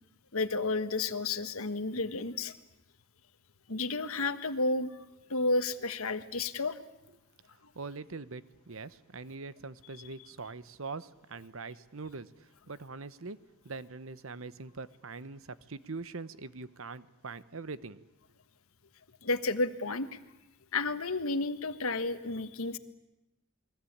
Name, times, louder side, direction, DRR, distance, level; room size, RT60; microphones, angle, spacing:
voice 1, 0.3-2.5 3.7-4.9 5.3-6.8 19.2-20.1 20.7-22.8, left 3 dB, 80° left, 11 dB, 1.4 m, -31 dB
voice 2, 7.7-13.4 13.6-18.1, right 4 dB, 65° right, 15 dB, 1.0 m, -43 dB
29.0 x 21.0 x 8.7 m, 0.98 s
head